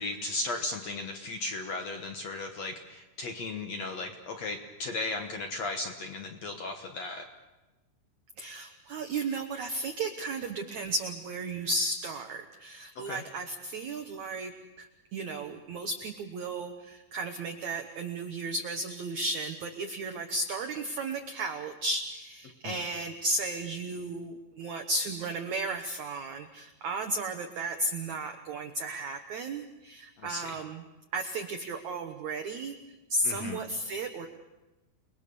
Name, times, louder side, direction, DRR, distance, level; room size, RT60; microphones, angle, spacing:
voice 1, 0.0-7.2 13.0-13.2 22.6-22.8 30.2-30.5 33.2-33.6, left 2 dB, 70° left, 5 dB, 1.5 m, -36 dB
voice 2, 8.4-30.8 31.1-34.3, right 2 dB, 75° right, 5 dB, 1.7 m, -34 dB
29.5 x 21.0 x 6.9 m, 1.1 s
omnidirectional pair, 5.2 m